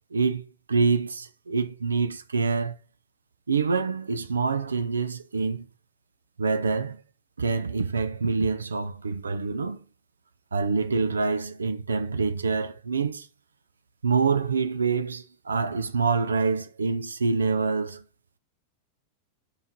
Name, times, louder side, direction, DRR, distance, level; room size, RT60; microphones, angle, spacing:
voice 1, 0.1-2.8 3.5-5.7 6.4-7.0 7.4-9.8 10.5-13.3 14.0-18.0, right 4 dB, 75° right, 0.6 m, -26 dB
5.5 x 5.0 x 5.8 m
figure-of-eight pair, 90°, 0 cm